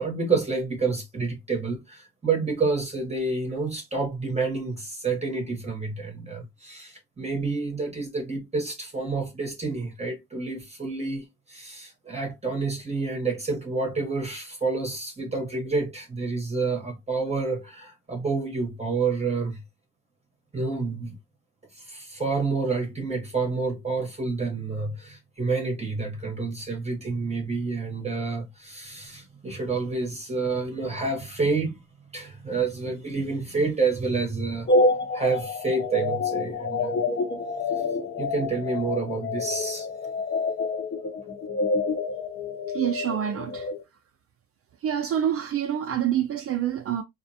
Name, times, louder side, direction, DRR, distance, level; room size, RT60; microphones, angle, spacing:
voice 1, 0.0-19.6 20.5-21.2 21.7-31.8 32.1-34.7 35.1-37.1 38.2-39.9, right 4 dB, 20° right, 0.9 m, -29 dB
sound 1, 34.7-43.8, left 3 dB, 35° left, 0.8 m, -27 dB
voice 2, 42.7-43.7 44.8-47.0, right 10 dB, 50° right, 0.4 m, -27 dB
2.4 x 2.1 x 2.6 m
cardioid pair, 90°, 30 cm